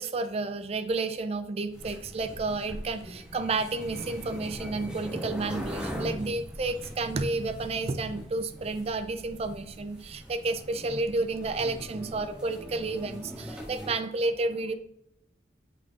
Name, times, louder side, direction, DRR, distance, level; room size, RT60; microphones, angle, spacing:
voice 1, 0.0-14.7, right 3 dB, 35° right, 11 dB, 0.4 m, -31 dB
sound 1, 1.7-13.9, equal, 5° right, 1.5 m, -41 dB
7.6 x 4.9 x 2.8 m, 0.77 s
head